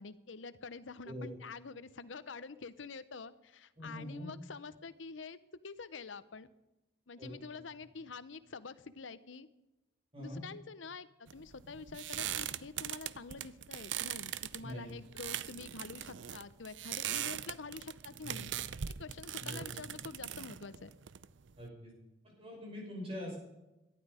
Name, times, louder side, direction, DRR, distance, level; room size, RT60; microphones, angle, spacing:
voice 1, 0.0-5.4 5.6-6.5 7.1-9.5 10.2-18.5 19.0-20.9, left 4 dB, 85° left, 15 dB, 0.8 m, -47 dB
voice 2, 3.8-4.3 7.2-7.3 10.1-10.4 14.6-14.9 18.2-18.5 19.4-19.8 21.6-21.9 22.2-23.4, equal, 30° right, -1 dB, 5.8 m, -43 dB
sound 1, 11.3-21.7, right 10 dB, 75° right, 0.6 m, -41 dB
18.0 x 12.0 x 5.1 m, 0.96 s
head